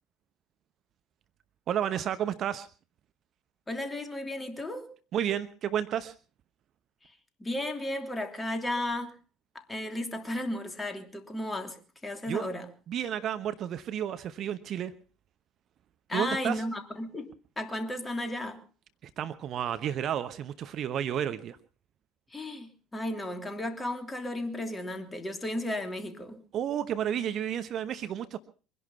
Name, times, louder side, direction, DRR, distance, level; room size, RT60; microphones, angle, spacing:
voice 1, 1.7-2.7 5.1-6.1 12.3-12.5 12.9-14.9 16.1-16.6 19.0-21.6 26.5-28.4, right 10 dB, 45° right, 1.0 m, -31 dB
voice 2, 3.7-4.9 7.0-7.1 7.4-9.2 9.5-12.7 16.1-17.3 17.6-18.6 22.3-26.4, left 1 dB, 15° left, 3.0 m, -34 dB
23.5 x 11.0 x 5.6 m
figure-of-eight pair, 60°, 0 cm